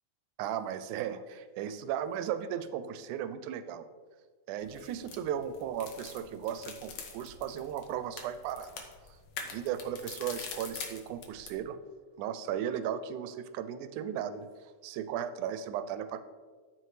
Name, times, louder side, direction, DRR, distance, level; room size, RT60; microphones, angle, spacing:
voice 1, 0.4-3.8 4.5-8.9 9.4-11.8 12.2-16.2, right 9 dB, 85° right, 12 dB, 2.0 m, -36 dB
sound 1, 4.6-11.6, left 5 dB, 70° left, 2.2 m, -45 dB
13.5 x 4.9 x 3.2 m, 1.5 s
omnidirectional pair, 3.5 m